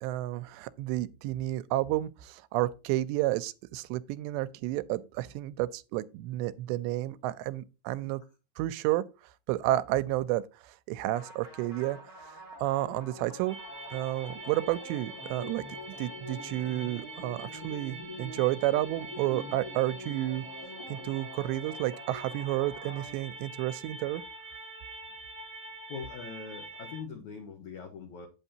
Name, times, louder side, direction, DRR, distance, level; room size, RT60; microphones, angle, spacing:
voice 1, 0.0-8.2 8.6-9.1 9.5-12.0 12.6-13.6 13.9-15.7 16.0-20.4 20.9-24.2, right 15 dB, 90° right, 2.8 m, -31 dB
sound 1, 11.1-23.7, left 1 dB, 10° left, 1.0 m, -46 dB
sound 2, 13.5-27.0, right 1 dB, 10° right, 4.1 m, -45 dB
voice 2, 25.7-28.3, left 5 dB, 75° left, 1.8 m, -42 dB
9.0 x 8.4 x 2.8 m
omnidirectional pair, 4.9 m